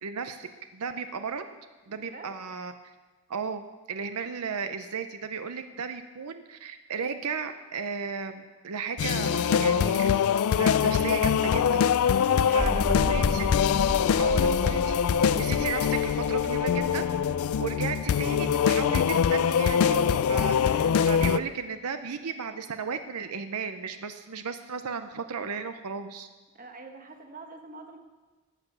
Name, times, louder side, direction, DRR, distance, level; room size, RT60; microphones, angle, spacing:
voice 1, 0.0-1.4 1.9-2.9 3.3-10.1 10.5-13.5 14.2-15.0 15.3-17.1 17.6-26.3, right 5 dB, 90° right, 9 dB, 0.6 m, -35 dB
voice 2, 1.9-2.3 12.3-13.5 14.1-14.3 26.5-28.0, right 3 dB, 40° right, 5 dB, 1.3 m, -46 dB
sound 1, 9.0-21.4, left 7 dB, 70° left, 0.3 m, -23 dB
sound 2, 12.6-18.9, equal, 20° right, 2.5 m, -35 dB
12.5 x 8.4 x 6.8 m, 1.3 s
head